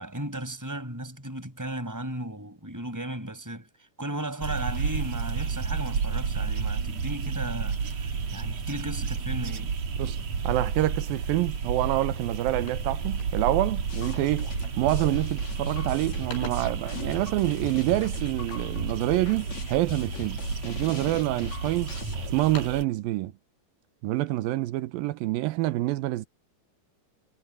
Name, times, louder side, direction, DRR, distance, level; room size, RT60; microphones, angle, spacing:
voice 1, 0.0-9.8, right 1 dB, 5° right, 7.2 m, -35 dB
sound 1, 4.4-22.8, right 5 dB, 45° right, 3.0 m, -31 dB
voice 2, 10.0-14.5 14.8-21.9 22.3-23.3 24.0-26.3, right 17 dB, 75° right, 2.5 m, -27 dB
sound 2, 11.7-11.9 12.2-13.7 14.4-14.7 15.0-15.5 15.9-16.9 18.4-19.6 20.1-20.7 21.3-21.9 22.3-23.0, left 4 dB, 75° left, 9.8 m, -47 dB
sound 3, 13.9-22.5, left 4 dB, 45° left, 4.2 m, -40 dB
omnidirectional pair, 4.6 m